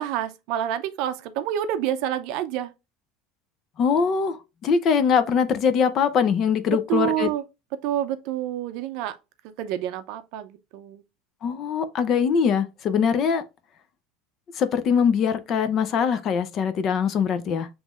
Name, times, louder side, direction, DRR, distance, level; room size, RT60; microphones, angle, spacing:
voice 1, 0.0-2.7 6.7-7.4 7.7-9.2 9.6-11.0, right 11 dB, 55° right, 0.5 m, -28 dB
voice 2, 3.8-7.3 11.4-13.4 14.5-17.7, left 6 dB, 30° left, 0.5 m, -22 dB
7.2 x 3.0 x 2.4 m
cardioid pair, 170°, 0 cm